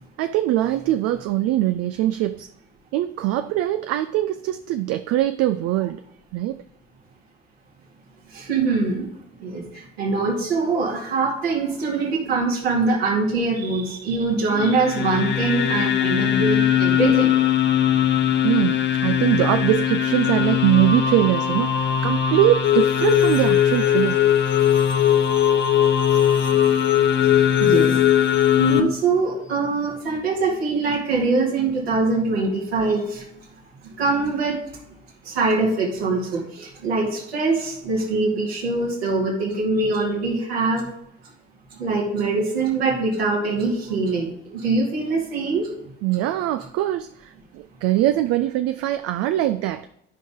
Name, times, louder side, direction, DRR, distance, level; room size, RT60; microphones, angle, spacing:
voice 1, 0.2-2.5 2.9-6.0 6.3-6.6 18.0-24.2 46.0-49.9, right 14 dB, 50° right, 0.5 m, -22 dB
voice 2, 8.3-9.1 9.4-9.6 10.0-17.3 27.6-28.0 28.6-33.2 34.0-34.6 35.3-40.9 41.8-45.7, right 3 dB, 75° right, 2.2 m, -23 dB
sound 1, 14.5-28.8, left 8 dB, 35° left, 1.0 m, -22 dB
sound 2, 22.6-28.8, left 12 dB, 55° left, 0.8 m, -19 dB
12.5 x 5.3 x 3.7 m
figure-of-eight pair, 45°, 31 cm